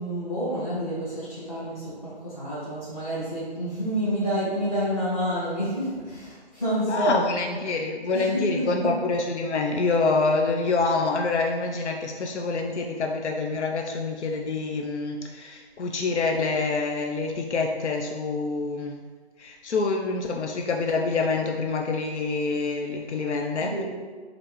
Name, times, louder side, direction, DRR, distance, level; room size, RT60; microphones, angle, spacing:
voice 1, 0.0-7.2 8.1-8.9 23.7-23.8, equal, 30° left, -10 dB, 1.4 m, -28 dB
voice 2, 6.9-19.0 19.4-23.8, left 3 dB, 90° left, 2 dB, 0.5 m, -26 dB
3.3 x 2.5 x 3.0 m, 1.5 s
figure-of-eight pair, 170°, 33 cm